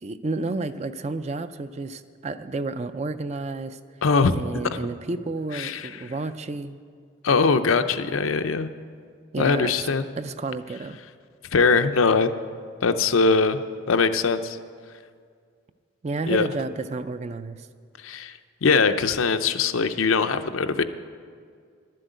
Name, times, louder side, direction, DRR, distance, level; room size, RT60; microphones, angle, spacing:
voice 1, 0.0-3.8 4.3-6.8 9.3-9.9 10.2-11.0 16.0-17.7, right 3 dB, 30° right, 11 dB, 0.4 m, -31 dB
voice 2, 4.0-4.4 5.5-6.0 7.2-8.7 9.4-10.1 11.5-12.3 12.8-13.6 13.9-14.6 16.3-16.5 18.0-18.3 18.6-20.8, left 4 dB, 80° left, 9 dB, 0.6 m, -21 dB
11.5 x 7.7 x 9.2 m, 2.1 s
head